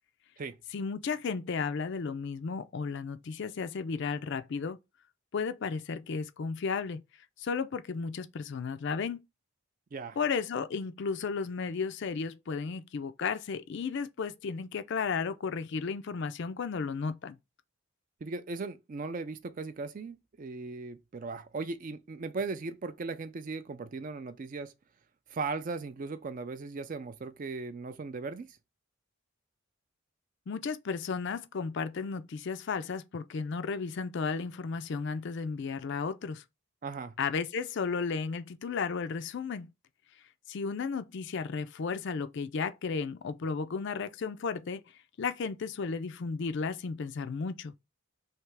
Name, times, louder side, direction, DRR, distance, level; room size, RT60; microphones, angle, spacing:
voice 1, 0.7-4.8 5.3-7.0 7.4-9.2 10.2-17.4 30.5-36.4 37.2-39.7 40.5-44.8 45.2-47.7, left 5 dB, 50° left, 0.4 m, -34 dB
voice 2, 18.2-24.7 25.3-28.6 36.8-37.1, right 4 dB, 35° right, 0.4 m, -38 dB
3.2 x 2.8 x 4.6 m
head